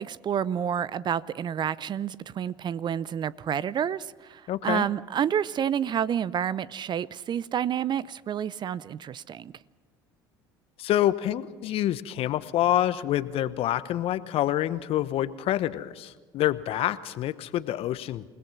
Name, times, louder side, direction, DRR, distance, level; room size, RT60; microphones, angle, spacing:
voice 1, 0.0-9.5, right 9 dB, 40° right, 0.6 m, -29 dB
voice 2, 4.5-4.9 10.8-18.3, left 13 dB, 55° left, 1.0 m, -27 dB
28.0 x 18.0 x 5.9 m
hypercardioid pair, 70°, 12 cm